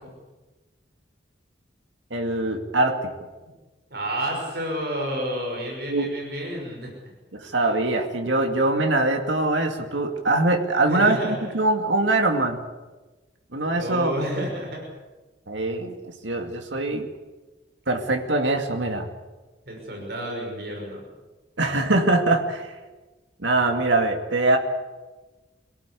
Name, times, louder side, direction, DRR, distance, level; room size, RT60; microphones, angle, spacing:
voice 1, 2.1-3.1 5.9-6.1 7.3-12.6 13.5-14.1 15.5-17.1 17.9-19.1 21.6-22.7 23.4-24.6, right 2 dB, 80° right, 4 dB, 2.3 m, -23 dB
voice 2, 3.9-6.9 10.9-11.5 13.7-14.8 19.7-21.0, equal, 55° right, 1 dB, 6.1 m, -30 dB
24.0 x 17.5 x 8.4 m, 1.2 s
head